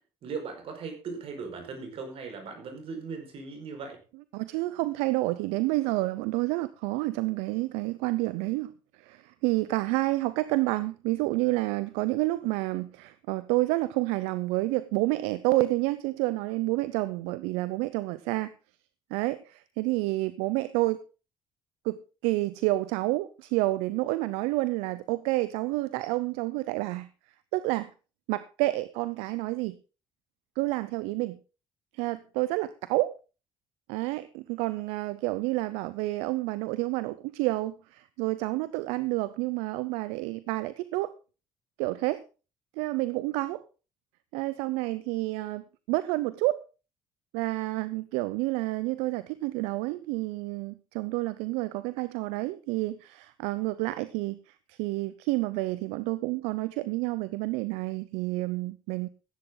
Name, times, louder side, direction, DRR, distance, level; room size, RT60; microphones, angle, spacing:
voice 1, 0.2-4.0, right 5 dB, 65° right, 5 dB, 4.9 m, -38 dB
voice 2, 4.3-18.5 19.1-21.0 21.8-27.1 27.5-27.9 28.3-29.8 30.6-31.4 31.9-33.1 33.9-41.1 41.8-42.2 42.8-43.6 44.3-46.6 47.3-59.1, right 19 dB, 85° right, 16 dB, 0.6 m, -29 dB
15.0 x 10.0 x 3.8 m, 0.33 s
supercardioid pair, 65°, 11 cm